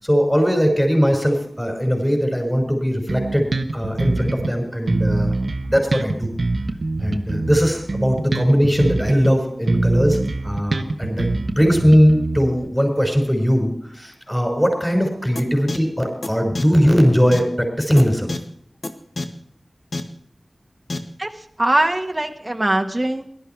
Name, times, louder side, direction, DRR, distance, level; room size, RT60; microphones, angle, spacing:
voice 1, 0.0-5.3 5.7-6.3 7.0-18.3, equal, 5° left, 2 dB, 5.8 m, -19 dB
Bass guitar, 3.1-4.5 4.9-9.3 9.7-12.7, right 2 dB, 75° right, 1.1 m, -24 dB
sound 1, 15.4-15.5 15.7-15.8 16.2-16.3 16.6-16.7 17.3-17.4 18.0-18.1 18.3-18.4 18.8-18.9 19.2-19.3 19.9-20.0 20.9-21.0, left 2 dB, 70° left, 1.5 m, -26 dB
voice 2, 21.6-23.2, right 1 dB, 25° right, 4 dB, 1.5 m, -21 dB
18.0 x 12.0 x 4.7 m, 0.66 s
wide cardioid pair, 60°, 0 cm